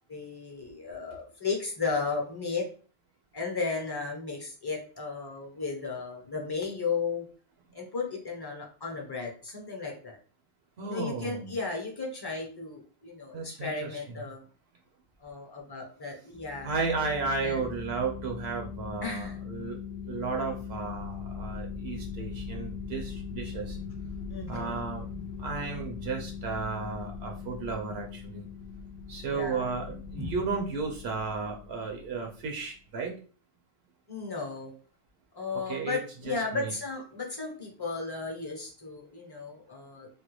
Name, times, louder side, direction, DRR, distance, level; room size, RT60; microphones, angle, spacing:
voice 1, 0.1-2.7 3.3-7.3 7.7-10.2 10.8-14.4 15.2-16.7 17.4-17.7 19.0-19.4 23.8-23.9 24.3-24.9 29.3-29.7 30.2-30.4 34.1-34.7 35.4-40.1, left 4 dB, 25° left, 0 dB, 0.7 m, -34 dB
voice 2, 10.8-11.5 13.3-14.0 16.6-19.8 20.1-23.8 24.5-25.1 25.4-28.5 29.1-33.1 35.7-36.0 36.3-36.7, right 4 dB, 75° right, 2 dB, 0.9 m, -34 dB
sound 1, 16.3-32.6, left 5 dB, 75° left, 0.8 m, -40 dB
3.4 x 2.2 x 3.0 m, 0.39 s
omnidirectional pair, 1.1 m